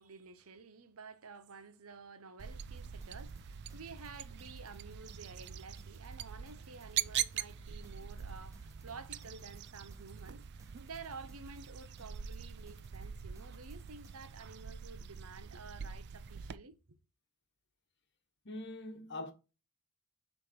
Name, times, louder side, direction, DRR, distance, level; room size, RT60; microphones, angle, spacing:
voice 1, 0.0-17.0, right 4 dB, 75° right, 0.9 m, -51 dB
sound 1, 2.4-16.6, right 9 dB, 50° right, 0.4 m, -43 dB
sound 2, 2.8-14.3, right 1 dB, 15° right, 1.0 m, -64 dB
voice 2, 18.4-19.3, left 2 dB, 55° left, 1.3 m, -42 dB
7.1 x 3.4 x 4.4 m
head